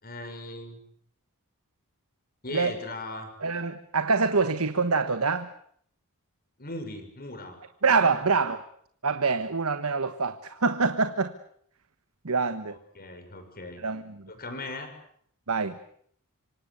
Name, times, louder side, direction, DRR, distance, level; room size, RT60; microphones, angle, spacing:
voice 1, 0.0-0.8 2.4-3.3 6.6-7.6 8.0-8.2 12.9-13.8 14.3-14.9, left 2 dB, 45° left, 6.4 m, -38 dB
voice 2, 3.4-5.5 7.8-8.6 9.0-11.3 12.2-12.8 13.8-14.3 15.5-15.8, right 4 dB, 70° right, 1.3 m, -25 dB
27.0 x 25.0 x 8.1 m
head